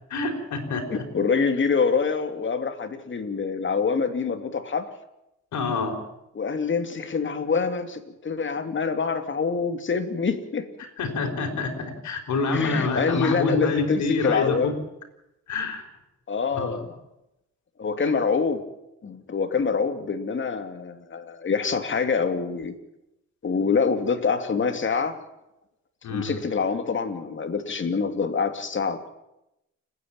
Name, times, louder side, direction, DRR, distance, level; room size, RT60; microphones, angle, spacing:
voice 1, 0.1-1.0 5.5-6.0 11.0-14.7 15.5-15.8 16.5-16.8 26.0-26.4, left 3 dB, 70° left, 4 dB, 5.1 m, -27 dB
voice 2, 0.9-4.9 6.3-10.7 12.5-14.8 16.3-17.0 17.8-18.6 19.0-22.7 23.4-25.2 26.1-29.1, left 5 dB, 40° left, 8 dB, 2.7 m, -26 dB
29.5 x 10.0 x 9.1 m, 0.86 s
cardioid pair, 90°, 30 cm